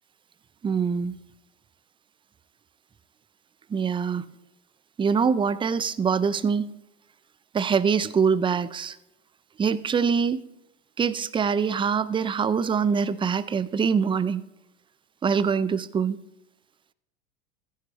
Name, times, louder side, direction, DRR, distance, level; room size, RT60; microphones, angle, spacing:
voice 1, 0.6-1.2 3.7-4.3 5.0-6.7 7.5-9.0 9.6-10.4 11.0-14.4 15.2-16.2, right 6 dB, 15° right, 16 dB, 0.5 m, -24 dB
16.0 x 14.0 x 3.2 m, 0.90 s
hypercardioid pair, 85°, 34 cm